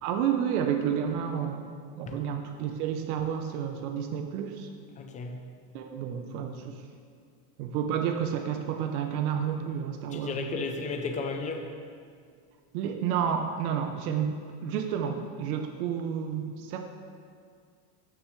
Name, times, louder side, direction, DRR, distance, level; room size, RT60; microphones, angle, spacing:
voice 1, 0.0-4.7 5.7-6.8 7.6-10.6 12.7-16.9, right 8 dB, 65° right, 5 dB, 0.8 m, -30 dB
voice 2, 5.0-5.4 10.1-11.7, left 4 dB, 15° left, 4 dB, 0.5 m, -34 dB
13.0 x 6.4 x 3.2 m, 2.1 s
supercardioid pair, 150°, 47 cm